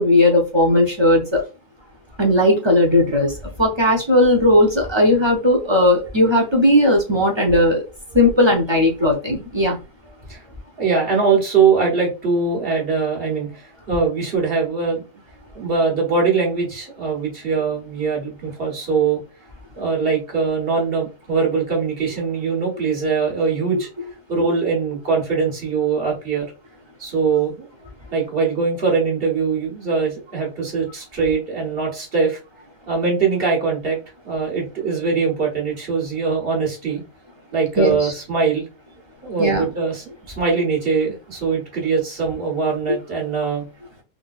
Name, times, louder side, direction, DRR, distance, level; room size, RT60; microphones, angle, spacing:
voice 1, 0.0-1.4 2.2-7.8 8.1-9.8 37.8-38.1 39.4-39.7, left 1 dB, 30° right, 0 dB, 0.6 m, -17 dB
voice 2, 10.8-15.0 15.5-19.2 19.8-23.9 24.3-26.5 27.0-27.6 28.1-32.4 32.9-34.0 34.2-37.0 37.5-38.6 39.2-40.0 40.4-43.6, right 5 dB, 50° right, -1 dB, 1.5 m, -22 dB
3.7 x 2.7 x 2.4 m, 0.30 s
omnidirectional pair, 1.3 m